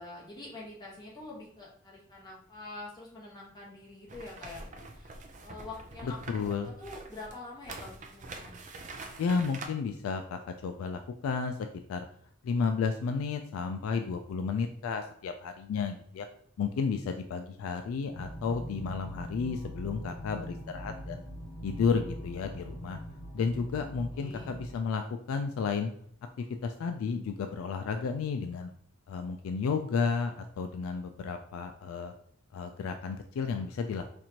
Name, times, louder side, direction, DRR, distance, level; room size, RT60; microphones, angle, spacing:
voice 1, 0.0-5.1 5.4-8.6 23.8-24.6, left 2 dB, 20° left, -5 dB, 1.2 m, -46 dB
sound 1, 4.1-9.7, right 3 dB, 35° right, 0.5 m, -45 dB
voice 2, 6.0-6.7 9.2-11.6 11.9-12.1 12.4-16.3 16.6-21.2 21.6-23.0 23.3-25.0 25.3-25.9 26.4-28.7 29.1-32.1 32.5-34.0, left 5 dB, 85° left, 7 dB, 0.3 m, -32 dB
sound 2, 18.1-24.8, equal, 40° left, 1.1 m, -42 dB
4.3 x 2.6 x 2.8 m, 0.63 s
head